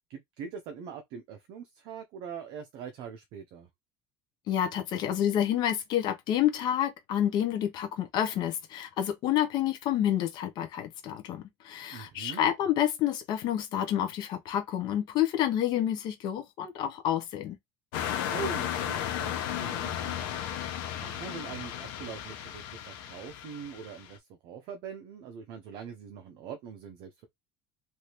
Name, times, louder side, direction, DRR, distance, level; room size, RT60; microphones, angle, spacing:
voice 1, 0.1-3.7 11.9-12.4 18.3-20.4 21.0-27.3, right 6 dB, 55° right, 0.6 m, -42 dB
voice 2, 4.5-17.6, left 11 dB, 45° left, 0.6 m, -29 dB
sound 1, 17.9-24.1, left 10 dB, 90° left, 0.8 m, -34 dB
3.2 x 2.6 x 2.9 m
cardioid pair, 170°, 10 cm